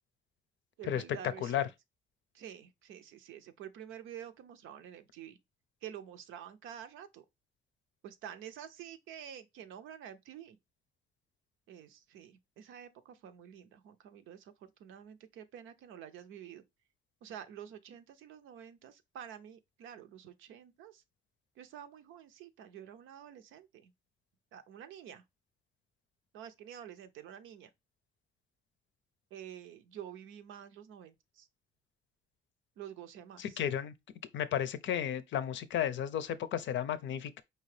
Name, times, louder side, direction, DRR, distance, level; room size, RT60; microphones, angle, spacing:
voice 1, 0.8-1.7 2.3-5.4 5.8-7.2 8.0-10.6 11.7-16.6 17.2-21.0 21.6-23.9 24.5-25.2 26.3-27.7 29.3-31.5 32.8-33.6, right 9 dB, 85° right, 0.6 m, -49 dB
voice 2, 33.4-33.9 34.3-37.4, left 10 dB, 70° left, 0.5 m, -33 dB
4.7 x 2.8 x 3.2 m
cardioid pair, 90°, 20 cm